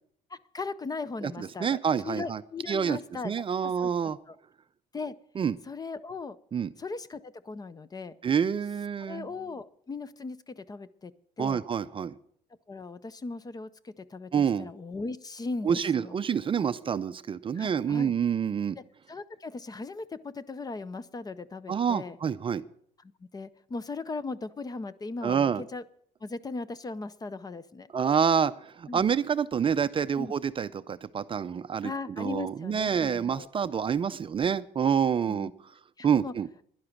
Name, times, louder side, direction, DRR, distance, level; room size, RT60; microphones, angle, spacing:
voice 1, 0.3-1.8 2.0-4.4 4.9-5.1 5.6-6.4 6.8-8.2 9.0-11.1 11.4-11.6 12.7-16.2 17.5-18.1 19.1-22.2 23.0-25.8 26.2-27.9 28.9-29.1 30.2-30.3 31.8-33.5 35.3-35.5 36.0-36.3, left 3 dB, 25° left, 17 dB, 0.6 m, -38 dB
voice 2, 1.2-2.4 2.7-3.0 3.2-4.2 5.4-5.6 6.5-6.7 8.2-9.3 11.4-12.2 14.3-14.7 15.6-18.8 21.7-22.6 25.2-25.6 27.9-31.9 32.2-35.5 36.0-36.5, right 7 dB, 30° right, 13 dB, 0.5 m, -27 dB
11.5 x 11.0 x 6.0 m, 0.64 s
cardioid pair, 110°, 17 cm